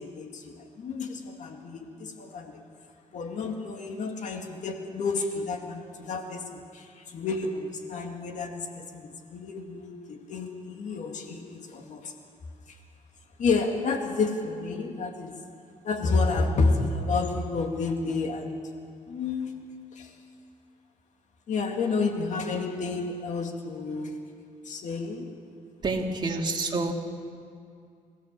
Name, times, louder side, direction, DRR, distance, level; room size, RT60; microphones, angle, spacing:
voice 1, 0.0-2.6 3.1-12.1 12.7-12.8 13.4-15.4 15.8-18.7 19.1-19.6 19.9-20.1 21.5-24.2 24.6-25.4, left 4 dB, 60° left, 3 dB, 2.3 m, -30 dB
voice 2, 25.8-26.9, right 3 dB, 35° right, 1 dB, 2.6 m, -28 dB
27.5 x 15.5 x 7.5 m, 2.3 s
cardioid pair, 100°, 14 cm